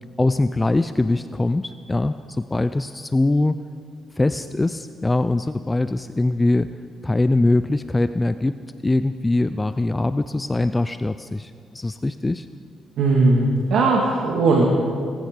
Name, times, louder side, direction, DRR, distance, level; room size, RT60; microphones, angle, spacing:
voice 1, 0.2-3.6 4.2-6.7 7.0-12.5, left 2 dB, 15° left, 12 dB, 0.4 m, -22 dB
voice 2, 13.0-14.7, right 3 dB, 75° right, -1 dB, 2.0 m, -18 dB
19.0 x 14.5 x 5.2 m, 2.3 s
cardioid pair, 90°, 0 cm